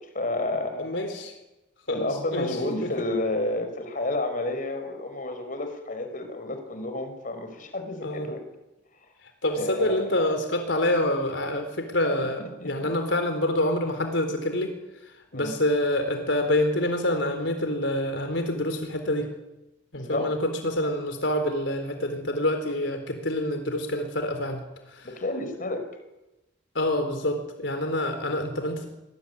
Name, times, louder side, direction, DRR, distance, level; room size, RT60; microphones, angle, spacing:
voice 1, 0.1-0.9 1.9-8.4 9.5-10.2 12.4-12.9 15.3-15.5 19.9-20.3 25.0-25.9, left 2 dB, 45° left, 7 dB, 5.3 m, -30 dB
voice 2, 0.8-1.3 1.9-2.5 8.0-8.3 9.4-14.7 15.3-19.3 19.9-24.6 24.9-25.1 26.7-28.9, left 1 dB, 75° left, 6 dB, 4.2 m, -27 dB
25.5 x 22.0 x 10.0 m, 0.99 s
head